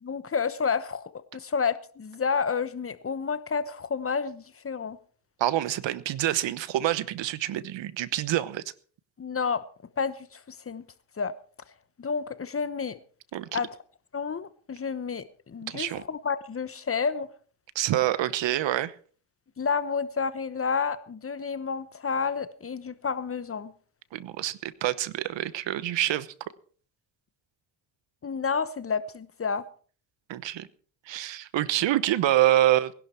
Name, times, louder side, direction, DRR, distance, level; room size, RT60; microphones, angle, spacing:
voice 1, 0.0-5.0 9.2-9.6 10.0-10.8 11.2-11.3 12.0-13.0 13.5-13.8 14.1-17.3 19.6-23.7 28.2-29.6, left 5 dB, 25° left, 1.0 m, -30 dB
voice 2, 5.4-8.6 13.3-13.6 15.7-16.0 17.7-18.9 24.1-26.3 30.3-30.7 31.1-32.9, right 13 dB, 65° right, 1.0 m, -26 dB
20.0 x 11.5 x 4.4 m
cardioid pair, 95°, 49 cm